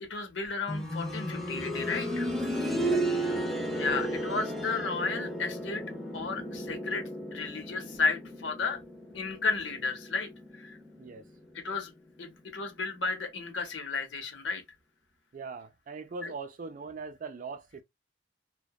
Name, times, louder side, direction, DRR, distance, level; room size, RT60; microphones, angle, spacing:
voice 1, 0.0-2.3 3.8-5.8 6.1-7.0 7.3-8.8 9.1-10.8 11.6-11.9 12.2-14.6 16.2-16.3, left 4 dB, 80° left, 0.7 m, -33 dB
sound 1, 0.7-11.4 12.8-12.9, right 1 dB, ahead, 0.6 m, -34 dB
voice 2, 2.8-3.6 11.0-11.3 15.3-17.8, right 4 dB, 45° right, 0.4 m, -41 dB
2.7 x 2.1 x 2.2 m
head